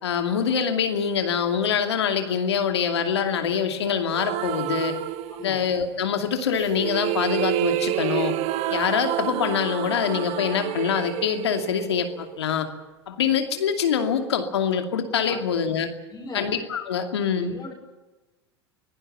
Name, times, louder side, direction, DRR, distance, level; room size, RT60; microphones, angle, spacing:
voice 1, 0.0-4.9 5.4-8.3 8.7-12.7 13.1-15.9 16.3-17.5, left 7 dB, 80° left, 6 dB, 2.5 m, -25 dB
sound 1, 4.1-5.8 6.5-12.6, right 14 dB, 50° right, 1.3 m, -29 dB
voice 2, 5.3-5.6 15.3-15.4 16.1-16.5 17.4-17.7, left 4 dB, 20° left, -2 dB, 5.5 m, -36 dB
24.5 x 18.0 x 7.1 m, 1.2 s
hypercardioid pair, 85°, 14 cm